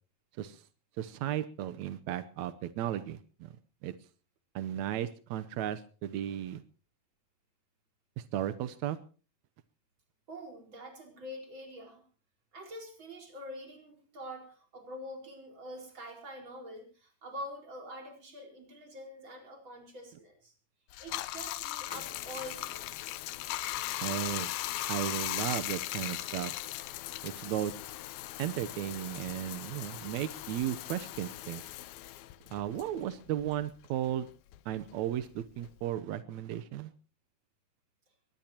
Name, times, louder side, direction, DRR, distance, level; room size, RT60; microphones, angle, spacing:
voice 1, 1.0-3.5 3.8-3.9 4.5-6.6 8.2-9.0 24.0-24.5 24.9-26.5 27.2-27.7 28.4-31.6 32.5-34.3 34.6-36.9, right 11 dB, 80° right, 12 dB, 1.6 m, -35 dB
voice 2, 10.3-12.0 12.5-20.5 21.0-22.8, equal, 30° right, 4 dB, 5.2 m, -45 dB
Bathtub (filling or washing), 20.9-33.7 34.0-35.9, left 15 dB, 75° left, 2.6 m, -38 dB
22.5 x 19.5 x 2.9 m, 0.37 s
omnidirectional pair, 4.5 m